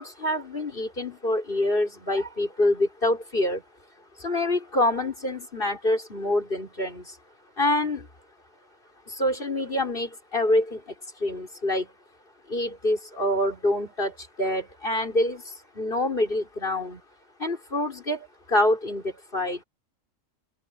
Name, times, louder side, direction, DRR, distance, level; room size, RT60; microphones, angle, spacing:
voice 1, 0.0-3.6 4.2-7.2 7.6-8.1 9.1-11.9 12.5-17.0 17.4-19.6, left 1 dB, 40° left, 4.9 m, -26 dB
omnidirectional pair, 1.4 m